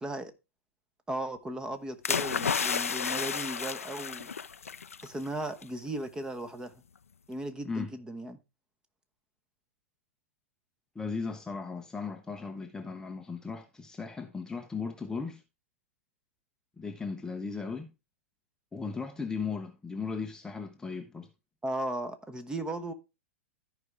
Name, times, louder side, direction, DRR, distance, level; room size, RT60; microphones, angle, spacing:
voice 1, 0.0-0.3 1.1-4.3 5.0-6.7 7.3-8.4 21.6-22.9, right 1 dB, 10° right, 1.0 m, -36 dB
sound 1, 2.0-5.1 5.4-5.6, left 6 dB, 85° left, 0.4 m, -31 dB
voice 2, 10.9-15.4 16.8-17.9 18.7-21.3, left 4 dB, 10° left, 0.7 m, -37 dB
14.0 x 4.9 x 3.2 m
hypercardioid pair, 110°, 7 cm